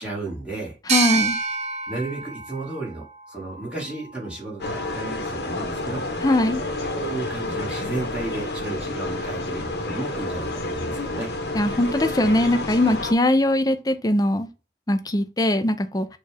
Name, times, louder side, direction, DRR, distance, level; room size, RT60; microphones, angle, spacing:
voice 1, 0.0-0.8 1.9-6.0 6.9-11.3, right 2 dB, 5° right, 1.8 m, -33 dB
voice 2, 0.9-1.4 6.2-6.6 11.5-14.5 14.9-16.1, left 1 dB, 20° left, 0.5 m, -21 dB
sound 1, 0.9-4.3, right 4 dB, 35° right, 1.1 m, -28 dB
sound 2, 4.6-13.1, left 2 dB, 60° left, 0.9 m, -29 dB
6.5 x 2.4 x 3.3 m
head